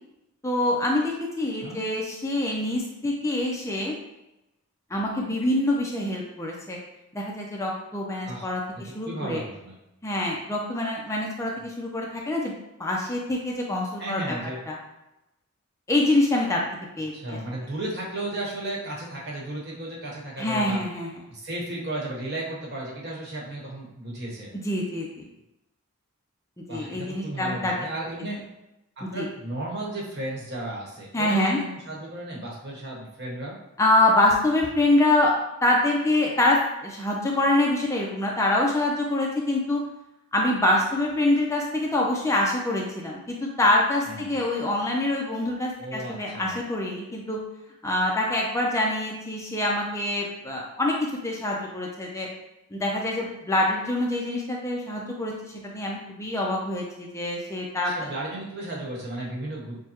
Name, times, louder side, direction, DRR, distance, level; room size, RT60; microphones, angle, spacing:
voice 1, 0.4-3.9 4.9-6.8 7.1-9.4 10.0-12.5 12.8-14.2 14.7-14.8 15.9-16.6 17.0-17.4 20.4-21.2 24.6-25.3 26.7-27.7 29.0-29.3 31.1-31.6 33.8-35.3 35.6-39.8 40.3-47.4 47.8-52.3 52.7-57.9, left 1 dB, 15° left, -2 dB, 0.5 m, -25 dB
voice 2, 8.7-9.8 11.6-11.7 14.0-14.6 17.1-20.8 21.3-24.5 26.7-28.4 29.0-33.6 44.1-44.4 45.8-46.6 57.8-59.8, right 1 dB, 50° right, -3 dB, 1.2 m, -34 dB
6.5 x 2.2 x 2.9 m, 0.93 s
head